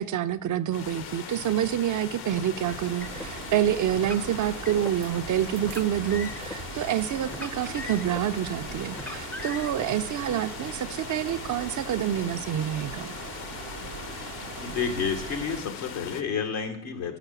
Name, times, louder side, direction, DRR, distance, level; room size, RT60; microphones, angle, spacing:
voice 1, 0.0-13.1, right 11 dB, 45° right, 12 dB, 0.5 m, -27 dB
sound 1, 0.7-16.2, left 8 dB, 60° left, 0.8 m, -40 dB
Car, 2.3-3.3 4.0-5.0 5.6-6.6 7.3-8.3 8.9-9.9, left 2 dB, 5° left, 0.5 m, -40 dB
sound 2, 2.6-15.6, right 9 dB, 80° right, 0.8 m, -41 dB
voice 2, 14.6-17.2, left 6 dB, 85° left, 4 dB, 1.3 m, -30 dB
6.5 x 5.9 x 7.0 m, 0.72 s
hypercardioid pair, 55°, 44 cm